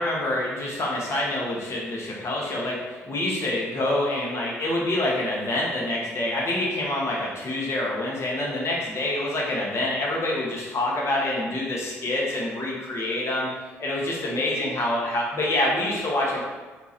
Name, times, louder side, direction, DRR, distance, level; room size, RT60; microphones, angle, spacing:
voice 1, 0.0-13.5 13.8-16.4, left 1 dB, 40° left, -4 dB, 1.3 m, -26 dB
3.5 x 2.9 x 4.2 m, 1.3 s
figure-of-eight pair, 45°, 7 cm